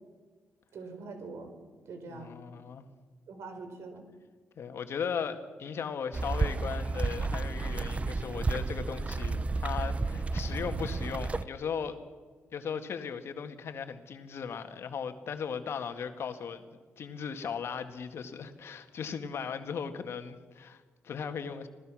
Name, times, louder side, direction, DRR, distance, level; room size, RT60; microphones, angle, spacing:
voice 1, 0.7-1.5 1.9-2.3 3.3-4.0, right 4 dB, 70° right, 7 dB, 4.3 m, -43 dB
voice 2, 2.1-2.9 4.6-12.0 12.5-16.6 17.0-21.7, left 6 dB, 65° left, 7 dB, 1.9 m, -37 dB
sound 1, 6.1-11.4, right 3 dB, 25° right, 0.8 m, -32 dB
26.0 x 17.5 x 6.3 m, 1.4 s
cardioid pair, 90°, 5 cm